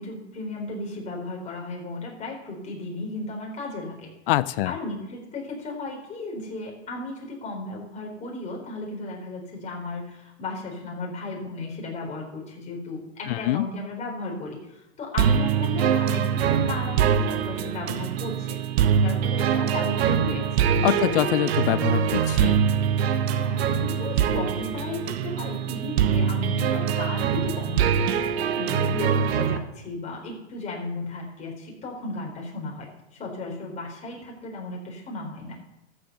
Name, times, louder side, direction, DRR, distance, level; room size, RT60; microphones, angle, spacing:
voice 1, 0.0-4.1 4.6-14.7 15.0-18.6 19.0-21.3 23.3-32.9 33.2-35.6, left 2 dB, 20° left, -1 dB, 4.5 m, -35 dB
voice 2, 4.3-4.8 13.3-13.7 20.8-22.6, left 16 dB, 55° left, 17 dB, 0.5 m, -24 dB
sound 1, 15.2-29.6, right 8 dB, 65° right, 1.2 m, -23 dB
13.5 x 7.1 x 6.9 m, 0.92 s
hypercardioid pair, 130°, 33 cm